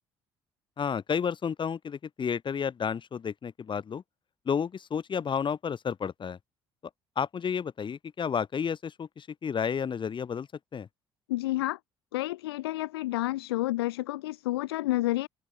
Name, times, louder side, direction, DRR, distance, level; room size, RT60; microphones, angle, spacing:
voice 1, 0.8-4.0 4.5-6.4 7.2-10.5 10.7-10.9, left 7 dB, 40° left, 1.5 m, -31 dB
voice 2, 11.3-11.8 12.1-15.3, left 17 dB, 80° left, 0.6 m, -30 dB
hypercardioid pair, 55°, 13 cm